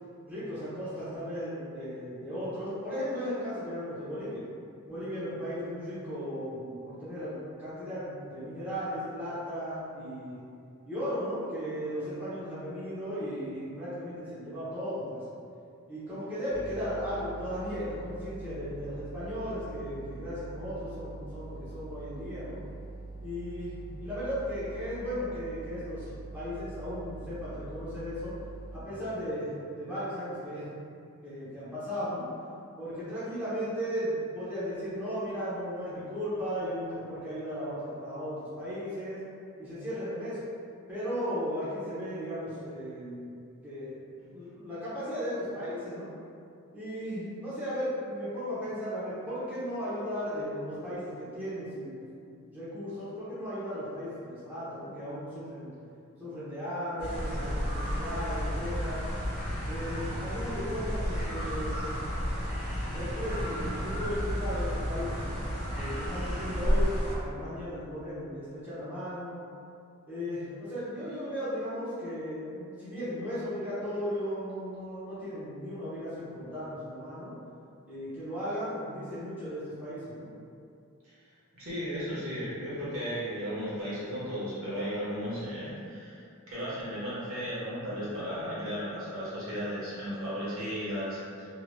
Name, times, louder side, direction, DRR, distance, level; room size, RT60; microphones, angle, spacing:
voice 1, 0.3-4.4 4.9-10.4 10.9-15.2 15.9-22.6 23.2-28.3 28.7-29.5 29.8-30.7 31.2-32.3 32.8-39.2 39.6-40.4 40.9-43.3 43.6-44.0 44.3-46.1 46.7-55.7 56.2-59.0 59.7-61.9 62.8-65.3 65.8-69.4 70.1-77.4 77.9-80.3, equal, 10° right, -13 dB, 0.8 m, -36 dB
sound 1, 16.5-28.8, right 2 dB, 80° left, 1.0 m, -44 dB
sound 2, 57.0-67.1, equal, 50° right, 1.0 m, -32 dB
voice 2, 81.5-86.2 86.5-91.5, equal, 70° right, -10 dB, 1.2 m, -35 dB
3.0 x 2.8 x 2.2 m, 2.4 s
head